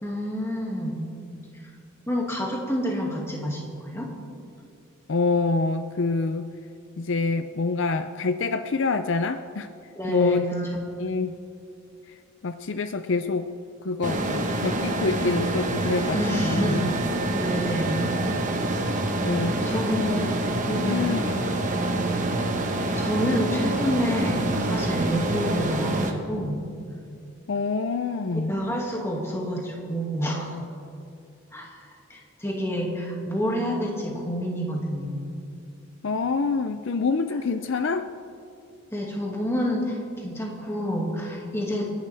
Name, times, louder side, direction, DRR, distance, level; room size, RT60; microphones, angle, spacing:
voice 1, 0.0-1.0 2.1-4.1 9.9-10.7 16.1-16.8 17.3-18.1 19.7-20.1 20.7-21.2 23.0-26.6 28.5-30.6 31.5-35.3 38.9-41.9, equal, 10° left, -2 dB, 2.2 m, -28 dB
voice 2, 5.1-6.5 7.0-9.7 10.1-10.4 11.0-11.3 12.1-12.2 12.4-13.5 13.8-17.0 19.2-20.3 20.8-21.5 27.5-28.5 36.0-38.1, left 4 dB, 60° left, 9 dB, 0.5 m, -26 dB
sound 1, 14.0-26.1, right 2 dB, 35° right, 1.2 m, -26 dB
28.5 x 11.5 x 3.5 m, 2.5 s
head